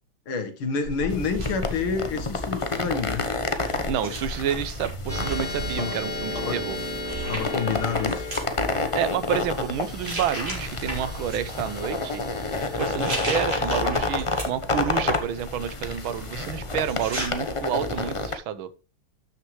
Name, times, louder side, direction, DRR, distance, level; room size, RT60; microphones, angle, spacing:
voice 1, 0.3-3.3 5.8-6.0 6.3-6.6 7.3-8.3, left 5 dB, 85° left, 2.3 m, -28 dB
sound 1, 0.8-2.7 3.6-5.7 6.7-6.8 7.1-8.5 9.2-9.6 10.0-11.4 12.8-14.7 15.1-17.3, equal, 30° right, 4.0 m, -35 dB
sound 2, 1.1-18.3, left 3 dB, 55° left, 0.3 m, -30 dB
voice 2, 3.9-6.8 9.0-12.2 12.8-18.7, right 9 dB, 75° right, 1.6 m, -29 dB
sound 3, 5.1-15.9, left 1 dB, 45° right, 4.2 m, -37 dB
12.5 x 6.7 x 3.2 m
omnidirectional pair, 2.3 m